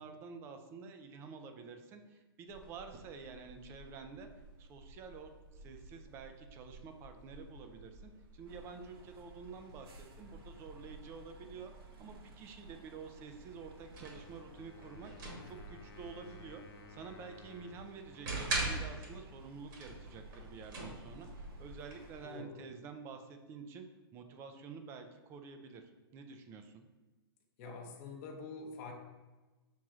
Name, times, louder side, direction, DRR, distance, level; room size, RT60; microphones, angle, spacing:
voice 1, 0.0-4.3 4.6-11.7 12.0-15.1 15.4-16.6 16.9-23.9 24.1-26.8, right 5 dB, 20° right, 6 dB, 0.3 m, -49 dB
sound 1, 2.5-22.2, right 2 dB, 55° right, 1.2 m, -46 dB
sound 2, 8.5-22.4, right 2 dB, 70° right, 0.8 m, -61 dB
Wind instrument woodwind instrument, 14.0-19.6, left 4 dB, 85° left, 0.5 m, -58 dB
voice 2, 22.2-22.6 27.6-28.9, left 4 dB, 35° left, 0 dB, 0.7 m, -46 dB
6.1 x 3.0 x 2.4 m, 1.2 s
hypercardioid pair, 145°, 13 cm